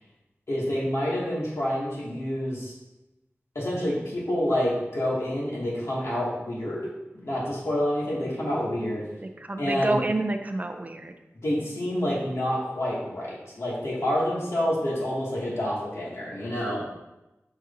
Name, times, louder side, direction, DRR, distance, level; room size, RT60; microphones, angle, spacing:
voice 1, 0.5-2.7 3.5-6.9 7.2-9.0 9.6-10.0 11.4-16.8, left 1 dB, 70° left, -6 dB, 2.2 m, -28 dB
voice 2, 9.4-11.1, right 2 dB, 30° right, 6 dB, 0.5 m, -28 dB
6.5 x 6.1 x 2.7 m, 0.97 s
wide cardioid pair, 60°, 5 cm